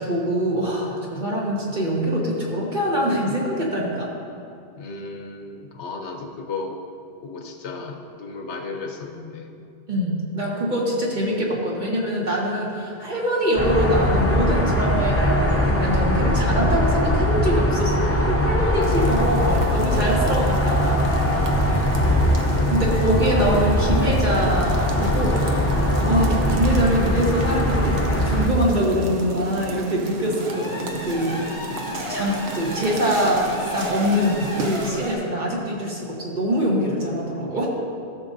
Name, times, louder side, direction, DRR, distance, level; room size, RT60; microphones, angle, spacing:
voice 1, 0.0-4.1 9.9-21.1 22.4-25.7 26.0-31.7 32.1-33.5 33.7-37.7, equal, 40° right, -4 dB, 1.5 m, -24 dB
voice 2, 4.8-6.8 7.2-9.5, left 3 dB, 75° left, 2 dB, 1.1 m, -34 dB
sound 1, 13.5-28.5, left 1 dB, 15° left, 0.5 m, -21 dB
sound 2, 18.8-34.9, right 2 dB, 60° right, 0.9 m, -34 dB
sound 3, 30.3-35.2, left 1 dB, 15° right, 1.7 m, -33 dB
14.5 x 6.4 x 2.6 m, 2.4 s
omnidirectional pair, 1.2 m